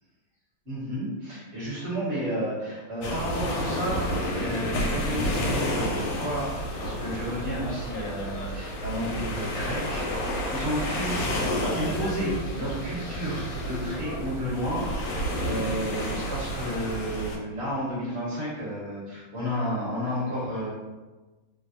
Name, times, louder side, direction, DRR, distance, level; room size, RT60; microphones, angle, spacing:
voice 1, 0.6-20.7, equal, 40° right, -7 dB, 1.3 m, -32 dB
sound 1, 3.0-17.4, equal, 85° left, 1.3 m, -30 dB
3.3 x 2.1 x 2.6 m, 1.2 s
omnidirectional pair, 2.1 m